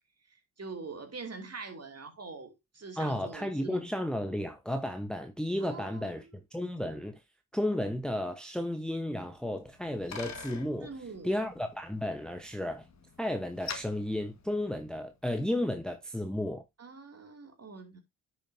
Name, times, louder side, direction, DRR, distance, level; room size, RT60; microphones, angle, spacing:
voice 1, 0.3-3.9 5.6-6.3 10.8-11.3 16.8-18.0, right 4 dB, 35° right, 2.7 m, -44 dB
voice 2, 3.0-6.3 6.5-7.2 7.5-10.9 11.2-12.8 13.2-16.6, left 1 dB, ahead, 1.0 m, -33 dB
Bicycle, 9.4-15.2, left 6 dB, 40° left, 1.7 m, -47 dB
10.0 x 6.1 x 2.7 m
hypercardioid pair, 50°, 43 cm